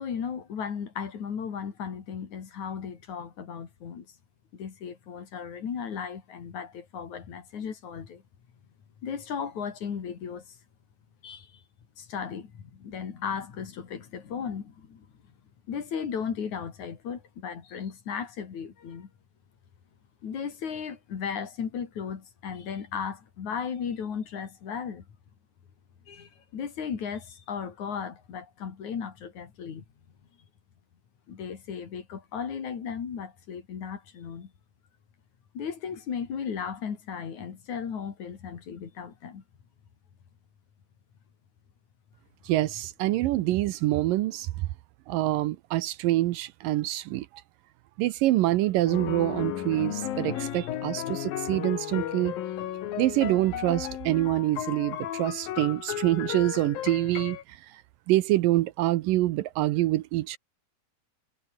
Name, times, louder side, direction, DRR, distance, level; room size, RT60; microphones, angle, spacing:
voice 1, 0.0-4.1 4.5-8.2 9.0-10.6 11.2-11.6 12.0-15.1 15.7-19.1 20.2-25.0 26.1-29.8 31.3-34.5 35.5-39.4, left 7 dB, 55° left, 3.9 m, -36 dB
voice 2, 42.5-44.7 45.1-47.3 48.0-52.3 53.0-57.8 58.1-60.4, right 16 dB, 80° right, 2.3 m, -26 dB
sound 1, 48.9-57.4, left 11 dB, 75° left, 3.3 m, -34 dB
omnidirectional pair, 4.2 m